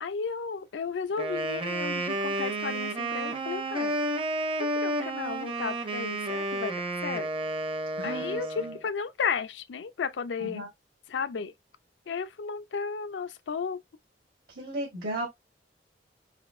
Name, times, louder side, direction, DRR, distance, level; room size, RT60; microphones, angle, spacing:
voice 1, 0.0-4.0 4.6-7.3 8.0-10.6 11.1-11.5 12.1-13.8, left 5 dB, 90° left, 0.5 m, -34 dB
Wind instrument woodwind instrument, 1.1-8.8, right 2 dB, 30° right, 0.6 m, -31 dB
voice 2, 8.0-8.7 10.4-10.7 14.5-15.3, right 1 dB, 65° right, 1.3 m, -35 dB
4.1 x 2.7 x 2.5 m
head